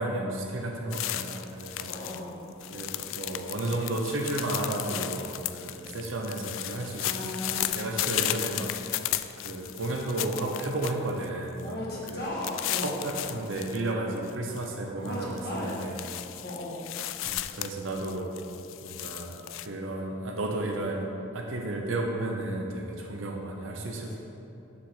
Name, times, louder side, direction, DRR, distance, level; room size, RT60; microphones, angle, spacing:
voice 1, 0.0-1.9 2.7-9.0 9.4-11.8 12.1-12.3 12.8-16.0 17.3-18.4 18.8-21.1 21.3-24.2, right 2 dB, 75° right, 2 dB, 0.8 m, -33 dB
sound 1, 0.9-2.2 2.5-11.3 11.6-11.7 12.1-13.8 14.2-14.6 15.1-19.7, left 14 dB, 70° left, 0.3 m, -35 dB
voice 2, 1.8-3.5 7.0-7.8 8.2-8.4 10.9-11.1 11.6-13.5 15.0-15.8 16.4-16.8 23.8-24.2, left 1 dB, 50° left, -5 dB, 1.8 m, -37 dB
6.9 x 4.9 x 6.6 m, 2.9 s
head